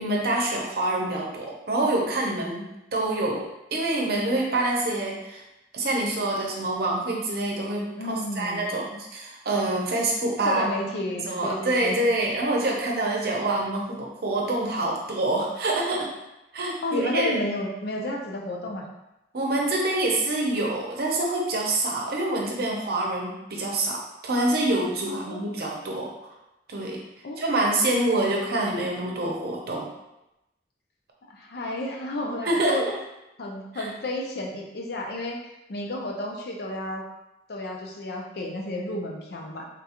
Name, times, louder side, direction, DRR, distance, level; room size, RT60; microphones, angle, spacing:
voice 1, 0.0-5.4 5.7-10.6 11.2-16.1 16.5-17.4 19.3-26.1 26.7-27.0 27.4-29.9 32.4-32.9 33.7-33.9, right 2 dB, 60° right, -1 dB, 0.7 m, -26 dB
voice 2, 8.0-8.7 10.4-12.0 16.8-18.9 25.1-26.0 27.2-27.4 31.3-32.8 33.4-35.4 35.7-37.0 37.5-39.7, left 1 dB, 65° left, 1 dB, 0.6 m, -32 dB
3.7 x 2.4 x 2.8 m, 0.92 s
head